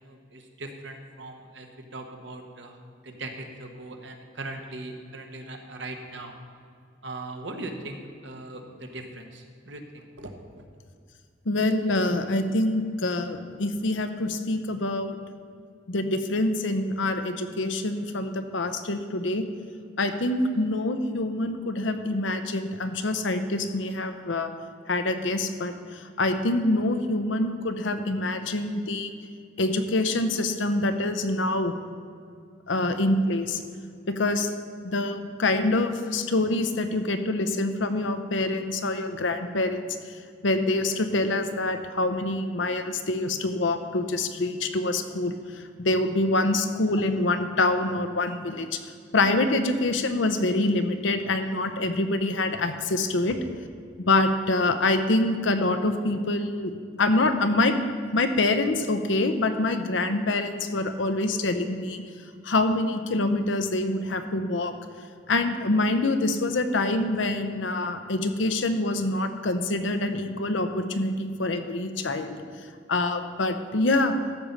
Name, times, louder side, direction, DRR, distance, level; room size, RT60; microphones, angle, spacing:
voice 1, 0.0-2.8 3.0-6.3 7.0-10.3 32.8-32.9 53.3-53.4, right 2 dB, 65° right, 4 dB, 1.3 m, -40 dB
voice 2, 11.5-15.2 15.9-19.4 20.0-24.5 24.9-29.1 29.6-31.7 32.7-33.6 34.1-34.5 34.8-40.0 40.4-48.8 49.1-53.4 54.0-56.7 57.0-57.8 58.1-62.0 62.4-64.7 65.3-72.4 72.9-74.2, left 2 dB, 75° left, 8 dB, 0.8 m, -25 dB
13.5 x 5.3 x 7.3 m, 2.2 s
head